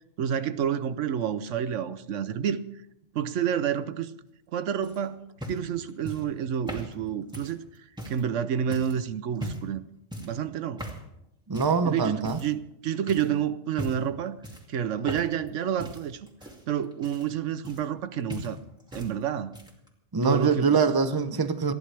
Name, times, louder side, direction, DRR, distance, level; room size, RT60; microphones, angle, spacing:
voice 1, 0.2-2.6 3.1-4.1 4.5-7.6 8.1-9.9 10.2-10.8 11.8-14.4 14.7-16.3 16.7-18.6 18.9-19.5 20.2-20.8, right 8 dB, 80° right, 1.1 m, -29 dB
sound 1, 4.8-8.3 8.7-9.0 9.3-9.8 10.1-10.4 10.8-11.1 11.5-11.8 12.2-12.7 13.1-13.3 13.7-14.1 14.4-15.5 15.8-18.0 18.3-19.1 19.4-19.9 20.8-20.9, equal, 5° right, 2.3 m, -39 dB
voice 2, 11.5-12.4 20.1-21.7, right 5 dB, 20° right, 0.8 m, -24 dB
28.5 x 10.5 x 3.4 m
omnidirectional pair, 1.3 m